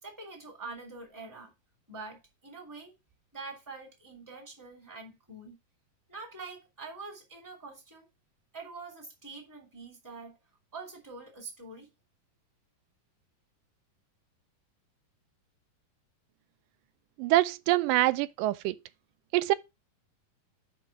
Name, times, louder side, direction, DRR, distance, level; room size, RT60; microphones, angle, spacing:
voice 1, 0.0-1.5 1.9-2.9 3.3-5.6 6.1-8.1 8.5-10.4 10.7-11.9, right 3 dB, 5° right, 2.0 m, -45 dB
voice 2, 17.2-18.8 19.3-19.5, right 16 dB, 90° right, 2.2 m, -25 dB
5.8 x 5.4 x 5.8 m
omnidirectional pair, 3.8 m